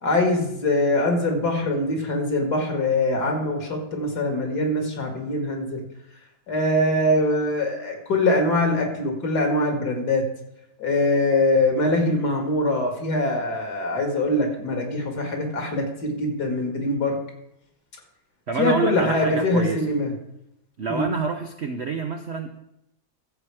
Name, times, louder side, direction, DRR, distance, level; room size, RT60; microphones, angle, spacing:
voice 1, 0.0-5.8 6.5-10.3 10.8-17.2 18.6-20.1 20.9-21.1, left 1 dB, 55° left, 3 dB, 2.5 m, -23 dB
voice 2, 18.5-19.8 20.8-22.6, right 4 dB, 60° right, 5 dB, 0.7 m, -27 dB
14.5 x 7.3 x 4.8 m, 0.81 s
omnidirectional pair, 2.1 m